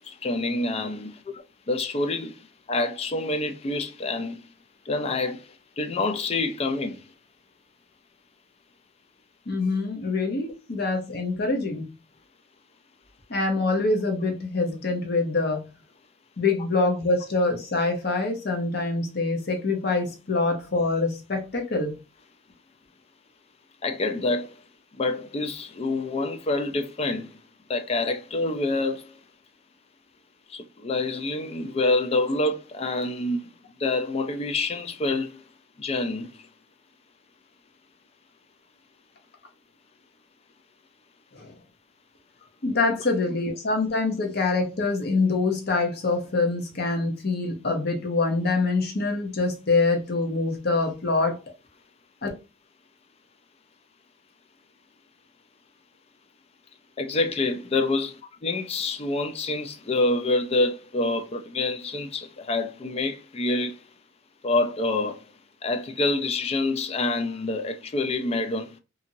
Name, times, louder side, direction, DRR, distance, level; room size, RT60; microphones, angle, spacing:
voice 1, 0.1-1.2 1.7-2.4 2.7-4.4 4.9-5.5 5.8-7.1 23.8-24.5 24.9-27.4 27.7-29.1 30.5-33.4 33.8-35.4 35.8-36.3 42.9-43.0 57.0-63.8 64.4-65.2 65.6-68.7, left 2 dB, 30° left, 0.3 m, -27 dB
voice 2, 9.5-11.9 13.3-15.7 16.4-22.0 41.3-41.5 42.6-51.4 52.2-52.3, left 3 dB, 50° left, 0.8 m, -25 dB
2.7 x 2.6 x 2.7 m
head